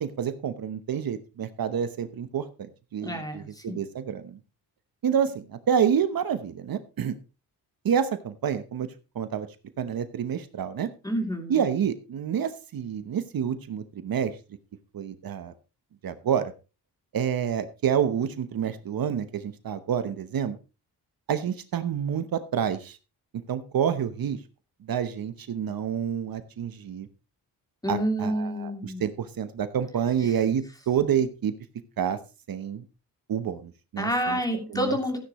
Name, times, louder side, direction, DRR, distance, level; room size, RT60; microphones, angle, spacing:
voice 1, 0.0-4.4 5.0-7.1 7.8-8.9 9.1-9.5 9.8-10.9 11.5-14.3 14.9-15.5 16.0-16.5 17.1-20.6 21.3-23.0 23.5-24.4 24.9-27.1 27.9-31.5 32.0-32.2 32.5-32.8 33.3-34.4 34.7-35.0, right 8 dB, 65° right, 11 dB, 1.0 m, -28 dB
voice 2, 3.0-3.8 11.0-11.6 27.8-29.0 34.0-35.2, equal, 10° left, 3 dB, 2.9 m, -28 dB
14.0 x 10.0 x 3.1 m, 0.30 s
wide cardioid pair, 125°, 38 cm